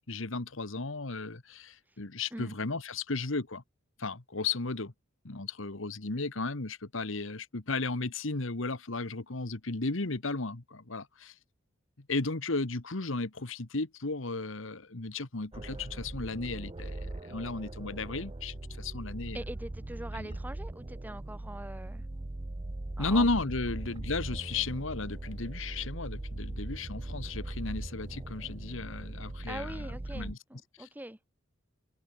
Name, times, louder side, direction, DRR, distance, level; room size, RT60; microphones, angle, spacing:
voice 1, 0.1-3.6 4.0-4.9 5.2-11.3 12.1-19.4 20.1-20.3 23.0-29.8 30.1-30.4 30.8-30.9, left 3 dB, 65° left, 1.5 m, -34 dB
sound 1, 15.5-30.3, right 2 dB, 25° right, 0.7 m, -40 dB
voice 2, 19.3-22.0 23.0-23.3 29.5-31.2, right 1 dB, 10° right, 1.5 m, -43 dB
head